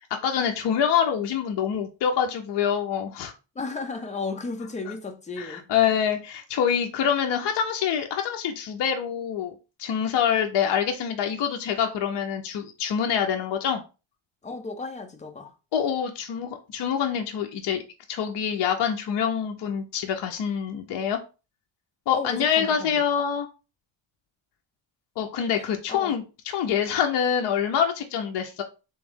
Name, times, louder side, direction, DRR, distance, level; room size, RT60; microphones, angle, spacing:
voice 1, 0.2-3.3 5.4-13.8 15.7-17.8 18.1-21.2 22.1-23.5 25.2-28.6, left 8 dB, 55° left, 0.6 m, -26 dB
voice 2, 3.6-5.6 14.4-15.5 22.1-22.9 25.6-26.1, left 3 dB, 15° left, 0.5 m, -34 dB
3.5 x 3.1 x 3.5 m
cardioid pair, 150°, 50 cm